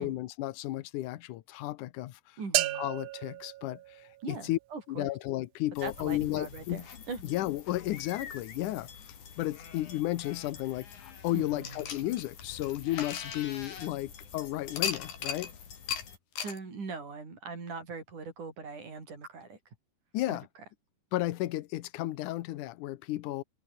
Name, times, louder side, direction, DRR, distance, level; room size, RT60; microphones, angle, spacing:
voice 1, 0.0-2.2 2.8-3.8 4.3-4.6 4.9-6.8 7.2-8.9 9.4-15.5 20.1-20.4 21.1-23.4, left 16 dB, 70° left, 2.1 m, -33 dB
voice 2, 2.4-2.8 4.2-5.1 5.8-7.2 11.3-11.9 16.4-19.6 20.3-20.4, right 4 dB, 50° right, 7.7 m, -41 dB
sound 1, 2.5-4.5, right 16 dB, 75° right, 1.8 m, -33 dB
sound 2, 5.8-16.2, left 7 dB, 55° left, 4.5 m, -47 dB
sound 3, 11.6-14.0 14.7-15.5 15.9-16.0 16.4-16.6, left 8 dB, 85° left, 5.4 m, -36 dB
omnidirectional pair, 4.4 m